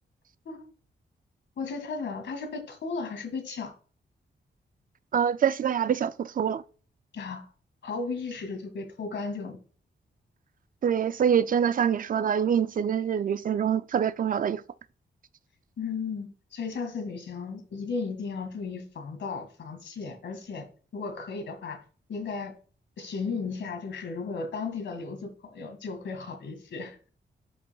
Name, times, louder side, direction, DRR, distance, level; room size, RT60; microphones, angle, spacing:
voice 1, 1.6-3.7 7.1-7.5 7.8-9.6 15.8-20.7 20.9-21.8 22.1-22.5 23.0-27.0, left 4 dB, 80° left, 2.0 m, -35 dB
voice 2, 5.1-6.6 10.8-14.6, right 8 dB, 50° right, 0.4 m, -25 dB
9.9 x 5.7 x 2.3 m
wide cardioid pair, 170°, 18 cm